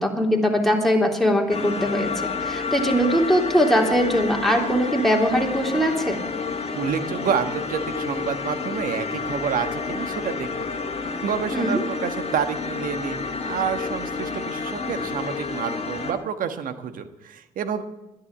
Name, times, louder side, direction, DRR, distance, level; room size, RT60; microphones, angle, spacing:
voice 1, 0.0-6.2 11.5-11.8, equal, ahead, 0 dB, 3.3 m, -21 dB
sound 1, 1.5-16.1, left 4 dB, 45° left, 2.1 m, -30 dB
voice 2, 6.7-17.8, right 7 dB, 65° right, 9 dB, 1.4 m, -29 dB
11.0 x 10.5 x 8.1 m, 1.0 s
supercardioid pair, 55°, 15 cm